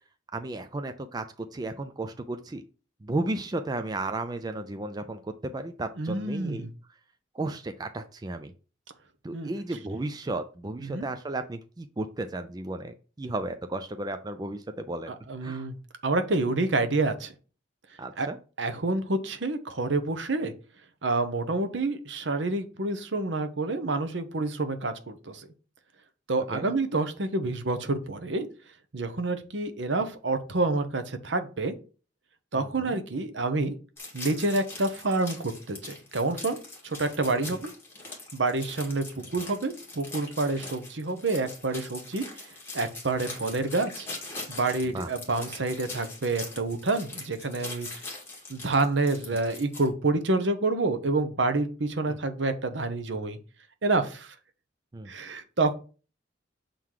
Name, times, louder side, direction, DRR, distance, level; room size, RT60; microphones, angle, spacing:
voice 1, 0.3-2.6 3.0-6.7 7.3-8.5 9.2-15.1 15.4-15.7 18.0-18.4 26.5-26.7 32.5-33.0 39.2-39.3 44.9-45.1 52.1-52.2 54.9-55.1, right 2 dB, 20° right, 8 dB, 0.4 m, -34 dB
voice 2, 6.0-6.7 9.3-9.5 10.8-11.1 15.1-15.7 16.0-17.3 18.2-18.3 18.6-20.5 21.0-25.4 26.3-28.5 28.9-31.7 32.5-33.7 34.1-36.6 36.8-37.7 38.3-39.0 39.3-42.2 42.7-44.1 44.5-47.9 48.5-53.4 53.8-54.3 55.1-55.7, right 3 dB, 70° right, 9 dB, 0.9 m, -28 dB
sound 1, 34.0-49.9, left 2 dB, 10° left, 1.9 m, -42 dB
6.9 x 3.8 x 4.7 m, 0.37 s
head